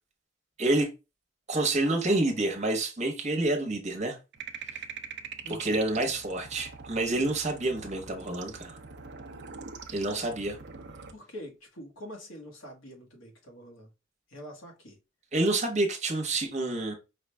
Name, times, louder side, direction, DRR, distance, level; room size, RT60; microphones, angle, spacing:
voice 1, 1.5-4.2 5.6-8.8 9.9-10.6 15.3-16.9, right 2 dB, 35° right, 1.1 m, -28 dB
sound 1, 4.3-11.1, right 5 dB, 60° right, 0.6 m, -43 dB
voice 2, 5.4-5.8 11.1-13.9 14.3-15.0, equal, 75° left, 1.4 m, -45 dB
4.9 x 2.4 x 3.3 m
head